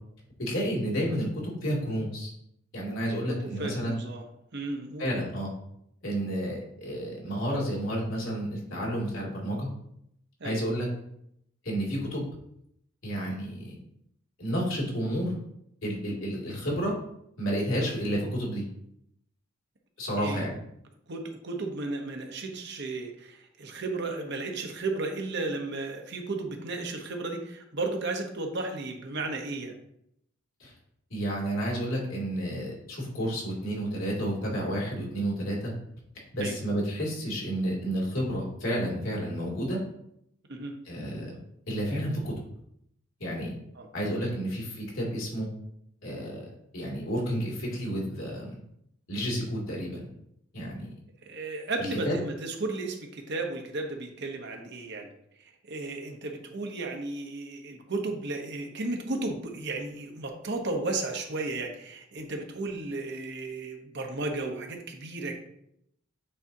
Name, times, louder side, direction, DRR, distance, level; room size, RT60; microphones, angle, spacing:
voice 1, 0.4-2.3 2.7-4.0 5.0-5.5 6.0-9.7 10.4-10.9 11.6-12.2 13.0-13.8 14.4-15.3 15.8-16.9 17.4-18.6 20.0-20.6 30.6-30.7 31.1-35.7 36.3-39.8 40.8-41.4 41.7-42.3 43.2-43.5 43.9-45.5 46.0-46.4 46.7-48.5 49.1-50.1 50.5-50.9 52.0-52.2, equal, 80° left, -3 dB, 2.4 m, -31 dB
voice 2, 3.0-4.2 4.5-5.1 10.4-10.6 20.1-20.4 21.1-29.7 36.4-36.6 40.5-40.7 43.8-43.9 51.2-55.1 55.4-65.4, right 2 dB, 60° right, 3 dB, 1.0 m, -34 dB
8.8 x 4.1 x 2.7 m, 0.76 s
head